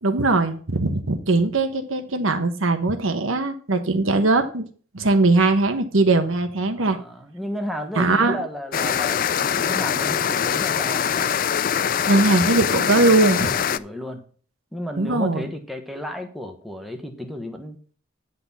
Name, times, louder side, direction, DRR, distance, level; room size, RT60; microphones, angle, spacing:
voice 1, 0.0-4.6 4.9-7.0 8.0-8.4 12.1-13.5 15.0-15.5, right 2 dB, 85° right, 7 dB, 1.2 m, -20 dB
voice 2, 6.7-11.3 13.2-14.3 14.7-17.9, equal, ahead, 4 dB, 1.2 m, -33 dB
sound 1, 8.7-13.8, left 8 dB, 45° left, 0.3 m, -23 dB
10.5 x 4.0 x 7.1 m, 0.43 s
head